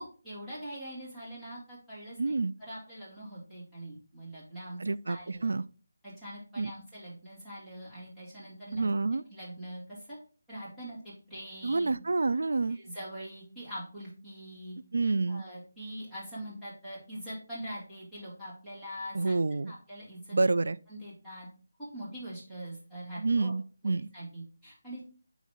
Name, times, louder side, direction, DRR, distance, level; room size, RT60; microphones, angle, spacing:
voice 1, 0.0-2.3 2.6-4.8 5.1-5.5 6.0-8.9 9.3-10.2 10.5-12.0 12.7-14.8 15.3-19.3 19.7-20.4 20.9-21.5 21.8-23.5 23.8-25.0, right 1 dB, ahead, 2.6 m, -43 dB
voice 2, 2.2-2.5 4.8-5.6 6.6-6.7 8.7-9.2 11.6-12.8 14.9-15.4 19.1-19.7 20.3-20.8 23.2-24.1, right 3 dB, 70° right, 0.3 m, -28 dB
9.1 x 3.1 x 3.7 m
figure-of-eight pair, 160°, 0 cm